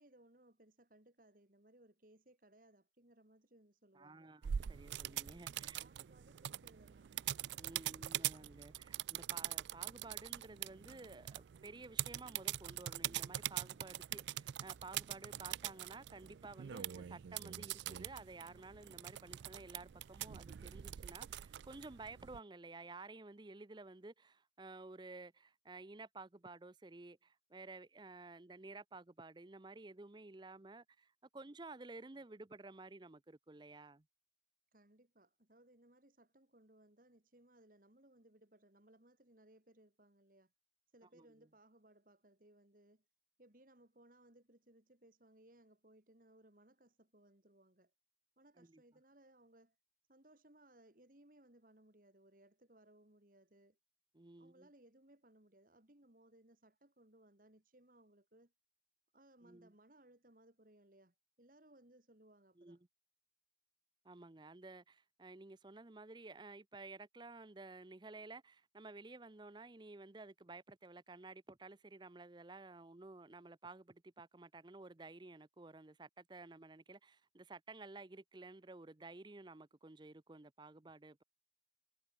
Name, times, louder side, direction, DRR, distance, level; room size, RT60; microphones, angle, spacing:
voice 1, 0.0-4.3 5.5-7.1 34.7-40.5 40.9-43.0 43.4-47.9 48.4-49.8 50.1-53.8 54.4-58.5 59.1-62.8, right 1 dB, 50° right, 2.8 m, -66 dB
voice 2, 3.9-5.8 7.6-34.0 41.1-41.3 48.6-48.8 54.1-54.7 59.4-59.7 62.6-62.8 64.0-81.2, right 3 dB, 25° right, 0.6 m, -53 dB
sound 1, 4.4-22.4, right 12 dB, 85° right, 0.4 m, -44 dB
head